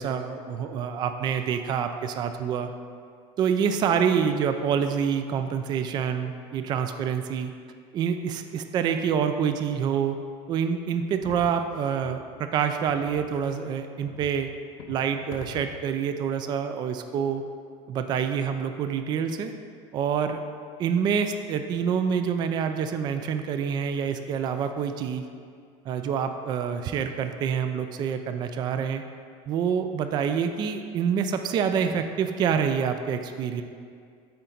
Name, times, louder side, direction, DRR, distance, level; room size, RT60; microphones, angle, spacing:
voice 1, 0.0-2.7 3.4-7.5 7.9-10.2 10.5-14.5 14.9-17.4 17.9-19.5 19.9-20.4 20.8-25.2 25.9-29.0 29.5-33.6, right 7 dB, 30° right, 8 dB, 0.3 m, -27 dB
sound 1, 11.2-11.6 12.0-12.2 12.9-13.4 14.1-14.4 14.8-15.1 15.3-15.7, left 7 dB, 70° left, 0.7 m, -43 dB
8.6 x 4.0 x 3.8 m, 2.2 s
cardioid pair, 155°, 14 cm